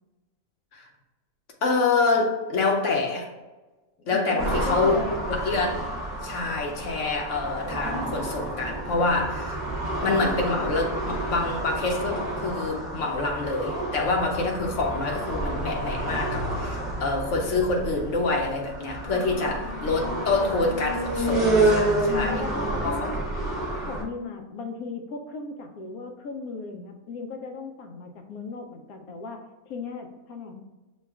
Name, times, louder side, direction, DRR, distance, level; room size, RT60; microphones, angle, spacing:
voice 1, 1.6-3.3 4.1-5.0 5.3-5.9 6.2-9.6 10.0-22.4 22.8-23.1, left 3 dB, 65° left, 2 dB, 1.0 m, -26 dB
voice 2, 4.0-5.3 19.1-20.0 22.1-23.2 23.9-30.6, left 4 dB, 85° left, 4 dB, 1.1 m, -36 dB
sound 1, 4.4-24.0, right 1 dB, 40° right, 0.8 m, -29 dB
6.3 x 2.3 x 3.4 m, 1.2 s
omnidirectional pair, 1.5 m